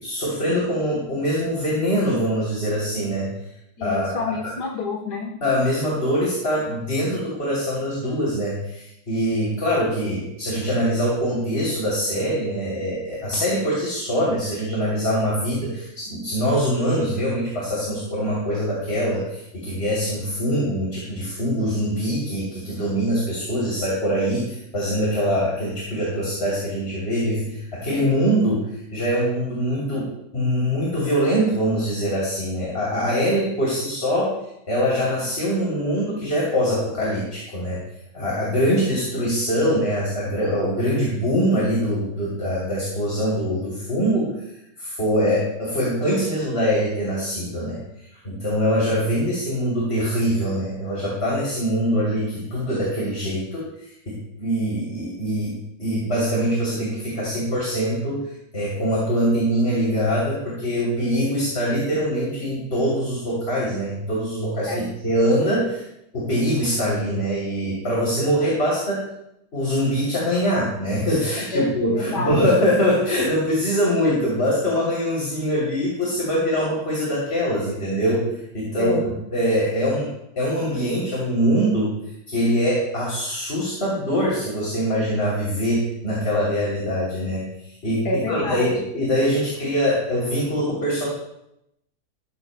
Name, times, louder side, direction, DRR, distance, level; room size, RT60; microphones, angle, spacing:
voice 1, 0.0-3.3 3.8-4.2 5.4-28.6 28.9-30.1 30.3-34.3 34.7-37.8 38.1-44.3 44.8-47.8 48.2-53.6 54.1-55.5 55.8-58.2 58.5-65.8 66.1-69.0 69.5-78.2 78.5-80.1 80.4-81.9 82.3-87.4 87.8-91.1, equal, 40° left, -6 dB, 3.5 m, -23 dB
voice 2, 3.8-5.3 64.7-64.9 71.5-72.4 78.8-79.0 88.1-88.7, left 3 dB, 85° left, -1 dB, 1.9 m, -27 dB
15.0 x 13.0 x 2.2 m, 0.81 s
omnidirectional pair, 1.7 m